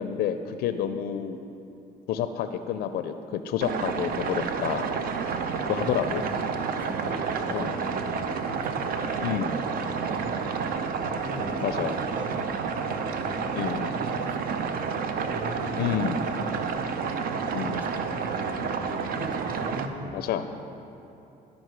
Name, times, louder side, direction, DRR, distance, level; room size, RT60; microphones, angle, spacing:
voice 1, 0.0-1.4 2.1-4.9 5.7-6.2 7.5-7.7 9.2-9.5 11.6-11.9 13.6-13.9 15.8-16.2 17.5-17.8 20.1-20.5, left 9 dB, 65° left, 9 dB, 0.4 m, -29 dB
sound 1, 3.6-19.9, right 5 dB, 60° right, 0.5 m, -30 dB
voice 2, 5.7-10.8 11.1-14.9 15.2-16.8 17.4-20.3, equal, 10° right, 2 dB, 0.9 m, -41 dB
11.5 x 5.2 x 4.7 m, 2.8 s
cardioid pair, 110°, 17 cm